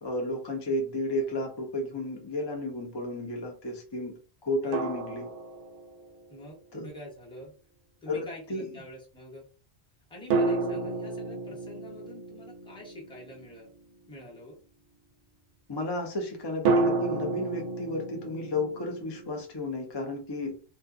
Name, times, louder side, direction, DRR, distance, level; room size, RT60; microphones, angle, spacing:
voice 1, 0.0-4.1 4.4-5.3 6.7-6.9 8.1-8.2 8.5-8.7 15.7-20.6, left 1 dB, 35° left, 2 dB, 0.4 m, -32 dB
sound 1, 1.1-1.2 4.7-6.2 10.3-13.9 16.7-19.4, right 3 dB, 65° right, 0.7 m, -31 dB
voice 2, 4.6-5.1 6.3-7.5 8.0-9.5 10.1-13.7 14.1-14.6, left 1 dB, 5° left, -4 dB, 0.8 m, -46 dB
2.7 x 2.3 x 2.5 m, 0.37 s
omnidirectional pair, 1.2 m